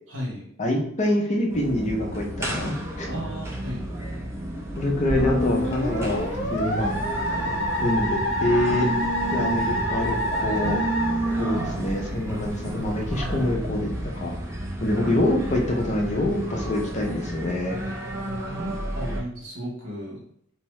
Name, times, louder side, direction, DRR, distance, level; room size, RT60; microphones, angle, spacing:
voice 1, 0.1-0.5 3.1-3.8 18.4-20.2, equal, 70° right, -3 dB, 1.0 m, -34 dB
voice 2, 0.6-3.1 4.8-7.0 7.8-8.9 9.3-10.8 11.4-14.3 14.8-17.8, left 1 dB, 35° left, 0 dB, 0.5 m, -26 dB
sound 1, 1.5-19.2, right 1 dB, 15° right, 0.6 m, -32 dB
Musical instrument, 5.1-12.0, equal, 60° left, 0.8 m, -27 dB
Telephone, 5.4-13.5, right 2 dB, 85° right, 0.4 m, -33 dB
2.7 x 2.2 x 3.0 m, 0.68 s
head